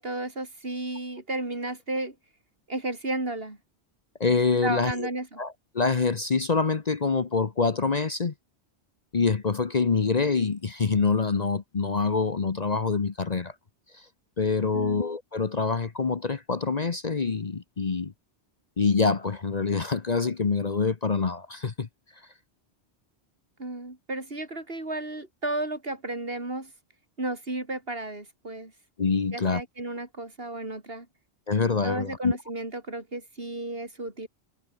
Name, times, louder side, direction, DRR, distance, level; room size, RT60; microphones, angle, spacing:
voice 1, 0.0-2.1 2.7-3.6 4.6-5.4 14.7-15.1 23.6-26.7 27.2-28.7 29.3-31.1 31.8-34.3, right 2 dB, 60° right, 4.5 m, -33 dB
voice 2, 4.2-5.1 5.4-8.3 9.1-13.5 13.9-14.0 14.4-18.1 18.8-21.9 29.0-29.6 31.5-32.3, left 4 dB, 40° left, 1.0 m, -25 dB
omnidirectional pair, 1.1 m